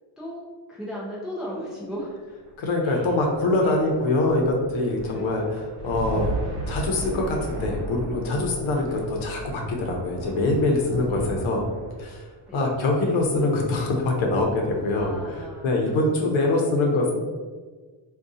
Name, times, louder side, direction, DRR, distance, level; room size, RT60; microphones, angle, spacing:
voice 1, 0.7-2.1 2.8-3.2 3.6-3.9 5.1-5.6 11.1-11.3 12.5-12.7 14.9-16.7, equal, ahead, -5 dB, 0.4 m, -37 dB
sound 1, 2.3-15.9, right 1 dB, 60° right, 0.8 m, -37 dB
voice 2, 2.6-5.4 5.8-6.3 6.7-11.6 12.0-17.2, left 2 dB, 70° left, 0 dB, 0.8 m, -24 dB
3.6 x 2.4 x 2.6 m, 1.4 s
cardioid pair, 150°, 48 cm